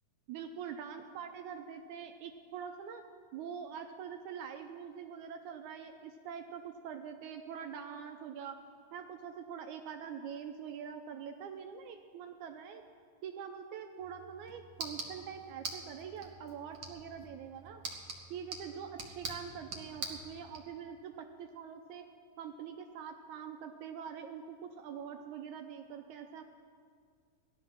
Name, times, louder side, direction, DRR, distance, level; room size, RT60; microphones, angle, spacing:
voice 1, 0.3-3.0 3.3-8.6 8.9-12.8 13.2-17.8 18.3-22.1 22.4-26.4, right 7 dB, 80° right, 6 dB, 1.9 m, -44 dB
sound 1, 14.0-20.6, right 3 dB, 50° right, 1.4 m, -45 dB
16.0 x 11.5 x 6.0 m, 2.1 s
omnidirectional pair, 3.7 m